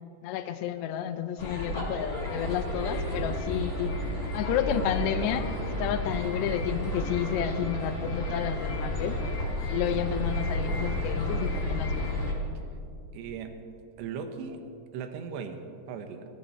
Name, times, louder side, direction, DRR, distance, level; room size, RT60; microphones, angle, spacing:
voice 1, 0.2-3.9 4.3-9.2 9.7-12.1, left 10 dB, 85° left, 10 dB, 2.9 m, -31 dB
sound 1, 1.4-12.3, left 1 dB, 20° left, 4.1 m, -31 dB
voice 2, 13.1-13.5 14.0-14.6 14.9-15.6 15.9-16.3, right 6 dB, 85° right, 7 dB, 3.2 m, -37 dB
20.5 x 14.0 x 4.3 m, 2.5 s
omnidirectional pair, 4.9 m